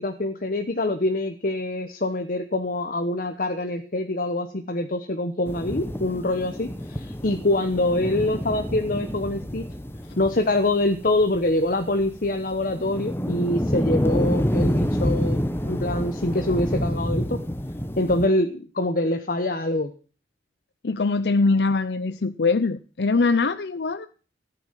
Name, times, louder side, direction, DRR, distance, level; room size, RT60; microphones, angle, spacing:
voice 1, 0.0-9.6 10.2-17.4 18.0-19.9, left 1 dB, 50° left, 7 dB, 1.1 m, -25 dB
sound 1, 5.5-18.3, equal, 15° left, 1.2 m, -28 dB
voice 2, 20.8-24.1, left 3 dB, 70° left, 13 dB, 0.6 m, -22 dB
14.5 x 9.3 x 7.5 m, 0.39 s
head